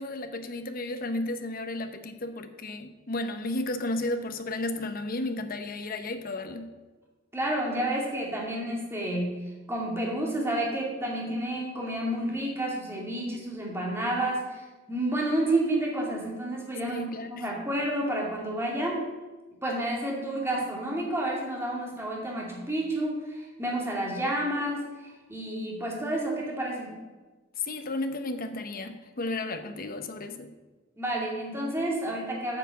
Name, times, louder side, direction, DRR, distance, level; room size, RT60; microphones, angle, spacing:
voice 1, 0.0-6.7 16.9-17.5 27.6-30.5, left 2 dB, 45° left, 8 dB, 0.8 m, -33 dB
voice 2, 7.3-9.3 9.7-17.0 17.3-19.0 19.6-26.9 31.0-32.6, right 1 dB, 10° right, -3 dB, 2.3 m, -30 dB
9.0 x 5.8 x 7.2 m, 1.2 s
head